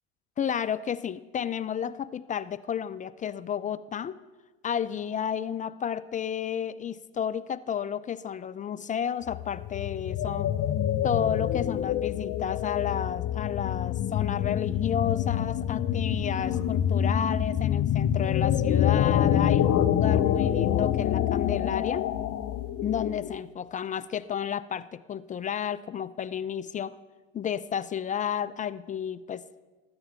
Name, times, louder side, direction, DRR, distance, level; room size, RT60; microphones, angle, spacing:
voice 1, 0.4-4.2 4.6-10.5 11.0-22.1 22.8-27.0 27.3-29.4, left 8 dB, 25° left, 15 dB, 0.4 m, -31 dB
sound 1, 9.3-23.4, left 10 dB, 40° left, 0.8 m, -26 dB
19.5 x 7.9 x 5.7 m, 1.3 s
hypercardioid pair, 80°, 35 cm